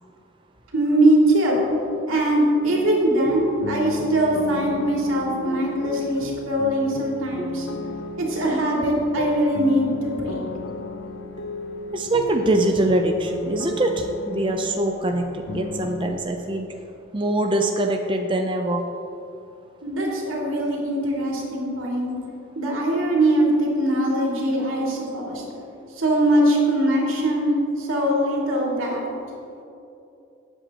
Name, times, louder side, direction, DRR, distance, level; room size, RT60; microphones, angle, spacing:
voice 1, 0.7-1.6 2.1-7.7 8.2-10.4 19.8-22.1 22.6-25.4 26.0-27.5 27.8-29.0, right 1 dB, 85° right, -3 dB, 2.6 m, -21 dB
sound 1, 2.6-16.1, left 2 dB, 65° left, 0.6 m, -34 dB
voice 2, 11.9-16.7 17.1-18.8, right 1 dB, 25° right, 3 dB, 0.5 m, -23 dB
18.0 x 8.1 x 2.9 m, 2.7 s
head